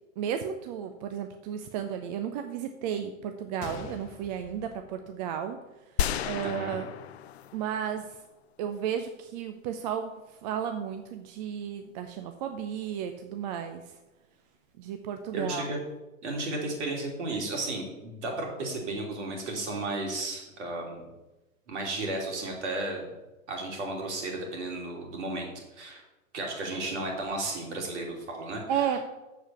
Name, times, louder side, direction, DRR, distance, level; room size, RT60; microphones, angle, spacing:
voice 1, 0.2-5.6 6.2-6.8 7.5-8.1 8.6-10.1 10.4-13.8 14.8-15.7 28.7-29.0, right 8 dB, 30° right, 7 dB, 0.6 m, -33 dB
Gunshot gunfire, 3.6-5.6 5.9-6.0 6.7-6.9, left 5 dB, 35° left, 1.1 m, -45 dB
sound 1, 6.0-8.3, left 10 dB, 50° left, 0.6 m, -33 dB
voice 2, 6.4-6.8 15.3-15.8 16.2-21.1 21.7-23.1 23.5-26.0 26.3-28.9, right 2 dB, 55° right, 0 dB, 3.2 m, -34 dB
7.2 x 7.1 x 7.1 m, 1.1 s
figure-of-eight pair, 100°, 41 cm